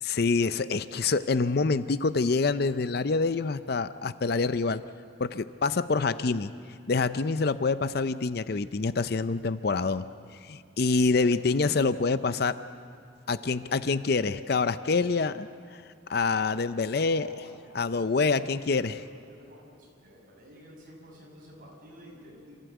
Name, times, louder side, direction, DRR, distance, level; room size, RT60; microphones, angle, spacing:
voice 1, 0.0-4.8 5.2-6.5 6.9-10.0 10.4-12.6 13.3-15.8 16.1-17.3 17.8-18.9, left 4 dB, 50° left, 13 dB, 0.5 m, -26 dB
voice 2, 11.1-11.5 16.9-17.6 18.0-22.6, equal, 45° right, -2 dB, 6.3 m, -51 dB
27.5 x 15.0 x 8.1 m, 2.3 s
head